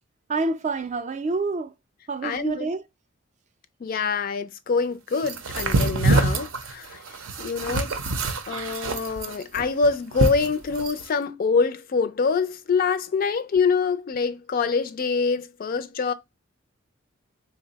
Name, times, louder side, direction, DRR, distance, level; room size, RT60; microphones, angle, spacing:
voice 1, 0.3-1.7 2.1-2.8, right 3 dB, 35° right, 0.3 m, -27 dB
voice 2, 2.2-2.7 3.8-7.0 7.4-8.0 8.5-16.1, left 5 dB, 45° left, 0.3 m, -25 dB
sound 1, 5.2-11.0, right 2 dB, 80° right, 0.6 m, -25 dB
3.8 x 2.0 x 3.9 m
head